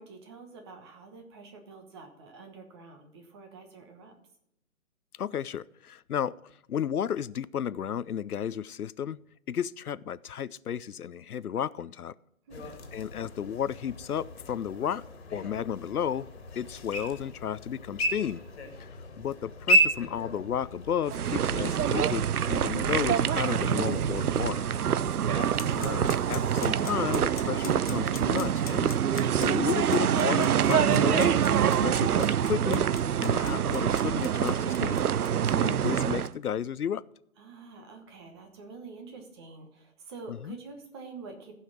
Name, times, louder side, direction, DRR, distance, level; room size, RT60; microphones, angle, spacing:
voice 1, 0.0-4.1 12.5-12.7 24.9-25.4 37.4-41.5, right 4 dB, 20° right, 4 dB, 1.1 m, -47 dB
voice 2, 5.2-6.3 6.7-9.2 9.5-12.1 12.9-15.0 15.3-16.3 16.6-18.4 18.8-18.9 19.2-24.6 25.8-28.9 29.4-32.9 33.2-35.0 35.5-37.0 40.3-40.6, left 9 dB, 90° left, 19 dB, 0.6 m, -33 dB
sound 1, 12.5-26.5, right 1 dB, 45° left, 2.1 m, -34 dB
sound 2, 21.1-36.3, right 9 dB, 90° right, 0.6 m, -26 dB
sound 3, 25.6-35.5, left 6 dB, 25° left, 0.8 m, -44 dB
15.0 x 5.6 x 6.1 m, 0.78 s
figure-of-eight pair, 150°, 43 cm